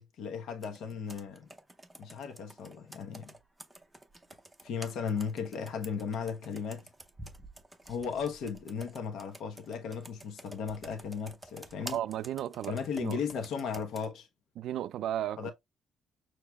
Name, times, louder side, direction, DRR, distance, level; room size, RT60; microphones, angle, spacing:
voice 1, 0.0-1.5 2.0-3.3 4.6-6.9 7.8-12.0 12.7-14.3 15.4-15.5, left 6 dB, 65° left, 1.0 m, -36 dB
Computer keyboard, 0.6-14.1, right 1 dB, 5° right, 0.6 m, -50 dB
voice 2, 11.8-13.2 14.6-15.5, right 11 dB, 65° right, 0.3 m, -35 dB
6.5 x 3.0 x 2.3 m
cardioid pair, 165°, 0 cm